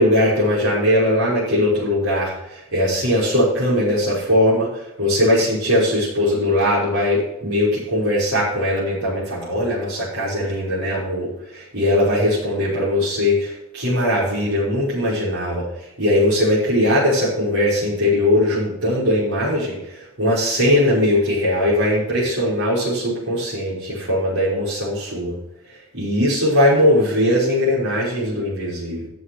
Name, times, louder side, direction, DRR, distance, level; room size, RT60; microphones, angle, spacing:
voice 1, 0.0-25.4 25.9-29.1, left 1 dB, 60° right, -9 dB, 5.9 m, -20 dB
14.0 x 6.8 x 6.5 m, 0.89 s
head